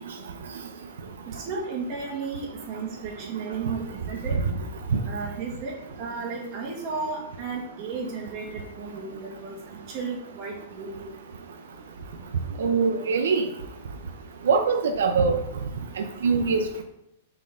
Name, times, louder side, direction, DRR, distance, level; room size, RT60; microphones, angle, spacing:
voice 1, 1.3-4.4 5.0-11.1, right 4 dB, 35° right, -2 dB, 2.0 m, -34 dB
voice 2, 12.6-13.4 14.5-15.3 16.0-16.6, right 5 dB, 90° right, 5 dB, 0.7 m, -22 dB
7.2 x 4.5 x 3.8 m, 0.85 s
supercardioid pair, 165°, 0 cm